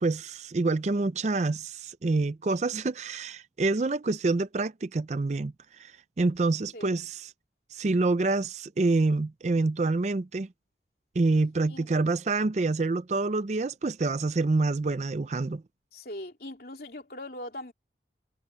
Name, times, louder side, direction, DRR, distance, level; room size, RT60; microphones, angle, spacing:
voice 1, 0.0-5.5 5.8-5.9 6.2-7.3 7.7-10.5 11.2-15.6, right 3 dB, 40° right, 0.4 m, -27 dB
voice 2, 15.9-17.7, left 1 dB, 55° left, 3.5 m, -40 dB
head